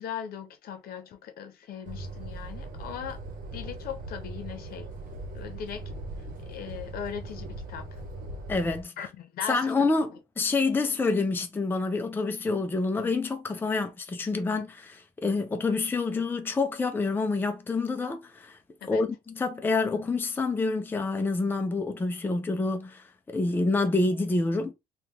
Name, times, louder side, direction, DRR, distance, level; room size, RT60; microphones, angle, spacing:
voice 1, 0.0-3.2 3.5-4.9 5.3-5.9 6.4-8.0 9.0-9.6 18.8-19.0, left 8 dB, 60° left, 0.8 m, -39 dB
sound 1, 1.8-8.8, right 2 dB, 55° right, 1.1 m, -39 dB
voice 2, 8.5-8.9 9.5-18.6 18.9-24.7, left 3 dB, 10° left, 0.5 m, -27 dB
3.0 x 2.3 x 3.5 m
cardioid pair, 110°, 17 cm